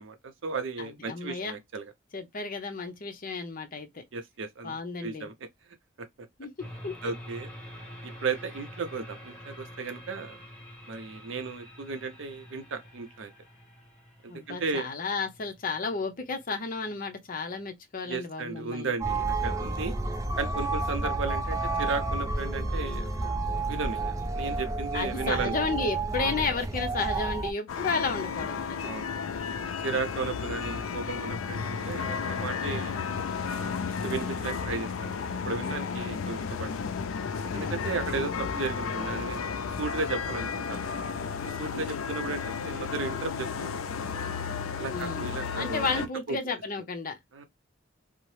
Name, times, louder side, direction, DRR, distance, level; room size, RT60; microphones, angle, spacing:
voice 1, 0.0-1.9 4.1-5.5 6.0-6.1 7.0-7.5 8.0-10.4 10.9-13.3 14.2-14.9 18.0-19.9 20.4-23.1 23.7-25.5 28.8-29.1 29.6-32.9 33.4-33.7 34.0-36.8 37.5-39.4 39.8-40.8 41.4-43.7 44.8-46.4 47.3-47.4, right 4 dB, 65° right, 0.6 m, -35 dB
voice 2, 0.8-1.6 2.1-4.0 4.6-5.3 6.4-6.5 6.8-6.9 14.3-18.9 24.9-28.9 44.9-47.2, left 4 dB, 45° left, 0.6 m, -33 dB
sound 1, 6.6-17.7, equal, 5° left, 0.9 m, -47 dB
sound 2, 19.0-27.5, right 3 dB, 15° right, 0.4 m, -30 dB
sound 3, 27.7-46.1, left 6 dB, 85° left, 0.4 m, -33 dB
2.8 x 2.0 x 3.1 m
head